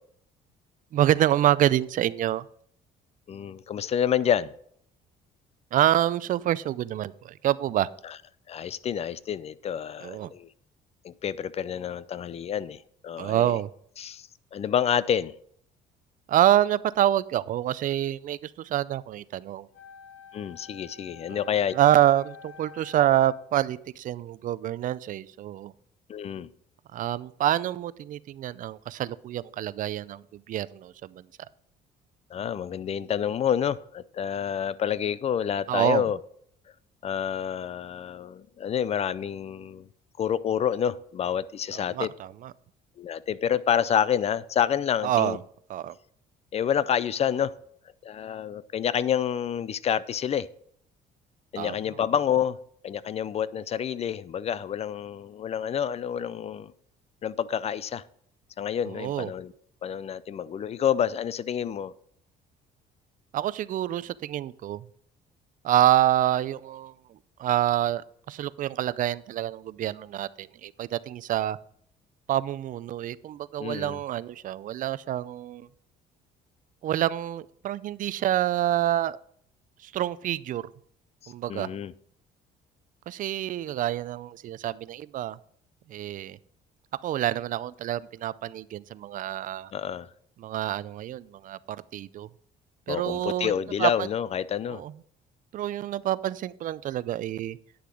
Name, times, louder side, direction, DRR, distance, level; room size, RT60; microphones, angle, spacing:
voice 1, 0.9-2.5 5.7-7.9 10.0-10.3 13.2-13.7 16.3-19.7 21.3-25.7 26.9-31.2 35.7-36.0 41.7-42.5 45.0-45.4 45.7-45.9 51.6-51.7 58.9-59.3 63.3-64.9 65.6-66.9 67.4-71.6 72.3-75.7 76.8-79.2 79.8-80.7 81.3-81.7 83.1-85.4 85.9-86.4 87.0-89.7 90.4-92.3 92.9-93.5 93.8-94.1 94.7-94.9 95.5-97.6, right 12 dB, 50° right, 0.4 m, -27 dB
voice 2, 3.3-4.5 8.0-8.2 8.5-10.5 11.0-13.6 14.0-15.3 20.3-21.7 26.1-26.5 32.3-36.2 37.0-39.9 40.2-42.1 43.0-45.4 46.5-47.5 48.0-50.5 51.5-52.6 52.8-56.7 57.2-58.0 58.6-59.5 59.8-61.9 73.6-74.0 81.2-81.9 89.7-90.1 92.9-94.8, left 9 dB, 40° left, 0.4 m, -28 dB
Wind instrument woodwind instrument, 19.7-23.5, left 6 dB, 70° left, 2.3 m, -48 dB
9.5 x 6.7 x 4.9 m
cardioid pair, 110°, 17 cm